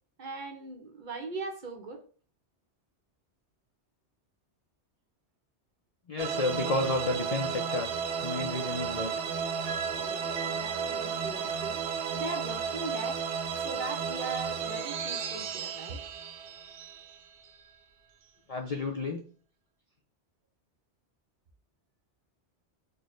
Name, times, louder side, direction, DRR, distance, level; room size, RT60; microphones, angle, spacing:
voice 1, 0.2-2.0 10.0-13.2 13.5-16.0, right 3 dB, 50° right, 0.8 m, -40 dB
voice 2, 6.1-7.9 8.2-9.1 18.5-19.2, left 2 dB, 50° left, 0.4 m, -31 dB
sound 1, 6.2-17.6, right 6 dB, 85° right, 1.0 m, -33 dB
sound 2, 7.0-14.0, equal, 15° right, 0.4 m, -51 dB
4.4 x 2.1 x 3.0 m
omnidirectional pair, 1.2 m